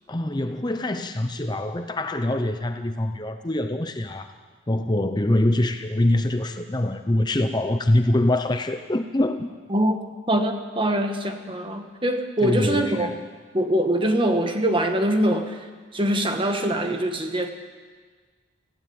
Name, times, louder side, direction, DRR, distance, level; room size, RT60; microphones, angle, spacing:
voice 1, 0.1-4.3 4.7-9.5 12.4-13.2, left 1 dB, 20° left, 8 dB, 0.7 m, -24 dB
voice 2, 10.3-13.1 13.5-17.5, right 1 dB, 25° right, 5 dB, 1.6 m, -23 dB
19.5 x 15.5 x 8.8 m, 1.5 s
head